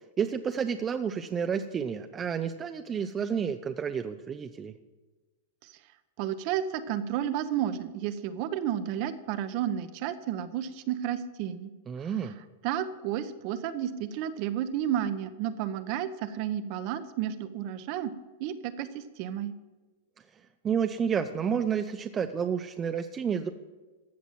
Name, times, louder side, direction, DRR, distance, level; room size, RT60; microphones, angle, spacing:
voice 1, 0.2-4.7 11.9-12.4 20.6-23.5, right 7 dB, 20° right, 8 dB, 0.5 m, -30 dB
voice 2, 6.2-11.7 12.6-18.1 18.4-19.5, right 10 dB, 45° right, 12 dB, 0.9 m, -32 dB
14.5 x 6.1 x 7.5 m, 1.2 s
hypercardioid pair, 140°, 0 cm